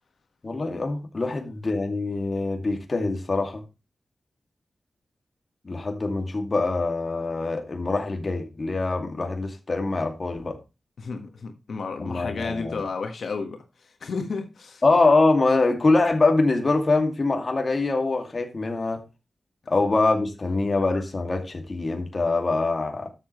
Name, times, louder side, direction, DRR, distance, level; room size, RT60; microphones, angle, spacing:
voice 1, 0.4-3.6 5.6-10.6 12.0-12.8 14.8-19.0 19.7-23.1, left 3 dB, 40° left, 2.4 m, -24 dB
voice 2, 11.0-14.8, left 4 dB, 85° left, 1.6 m, -32 dB
13.0 x 7.1 x 3.2 m
wide cardioid pair, 105°, 0 cm